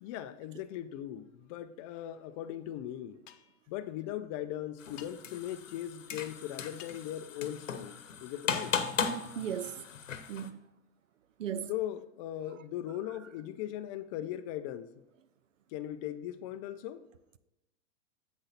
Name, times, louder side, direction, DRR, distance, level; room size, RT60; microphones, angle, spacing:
voice 1, 0.0-3.2 3.7-8.7 11.7-14.9 15.7-17.0, left 12 dB, 30° left, 0.4 m, -39 dB
sound 1, 3.3-3.6 5.0-5.1 6.8-7.1 9.1-9.3, left 11 dB, 55° left, 0.8 m, -52 dB
sound 2, 4.8-10.5, left 6 dB, 85° left, 0.9 m, -37 dB
voice 2, 9.2-9.8 10.3-10.6 11.4-11.7, right 9 dB, 85° right, 0.6 m, -36 dB
8.0 x 6.3 x 4.2 m
hypercardioid pair, 110°, 38 cm